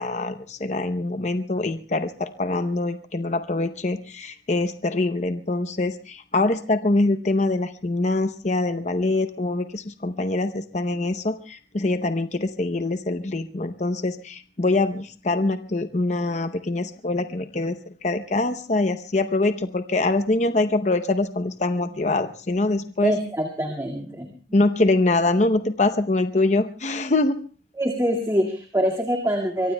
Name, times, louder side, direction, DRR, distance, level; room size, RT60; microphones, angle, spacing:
voice 1, 0.0-17.8 18.0-23.1 24.5-27.4, left 2 dB, 40° left, 8 dB, 0.7 m, -24 dB
voice 2, 23.0-24.3 27.7-29.7, equal, 15° right, 0 dB, 2.0 m, -24 dB
24.5 x 23.5 x 2.2 m, 0.40 s
head